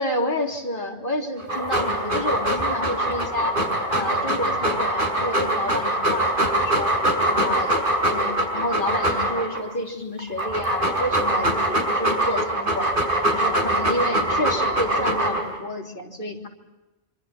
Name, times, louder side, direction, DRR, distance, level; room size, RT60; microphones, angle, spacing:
voice 1, 0.0-3.6 3.9-6.9 7.3-7.8 8.0-13.0 13.3-16.5, left 1 dB, 55° left, 0 dB, 3.8 m, -29 dB
Dog, 1.4-9.6 10.2-15.6, right 1 dB, 55° right, 6.4 m, -23 dB
26.5 x 26.0 x 6.0 m, 1.1 s
omnidirectional pair, 1.1 m